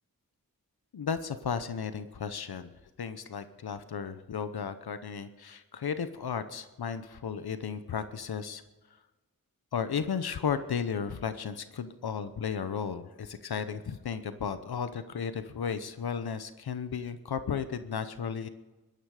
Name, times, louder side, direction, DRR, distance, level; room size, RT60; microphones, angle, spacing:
voice 1, 0.9-2.7 3.0-8.6 9.7-18.5, left 6 dB, 85° left, 11 dB, 0.9 m, -34 dB
19.0 x 13.0 x 4.9 m, 1.1 s
wide cardioid pair, 70°, 37 cm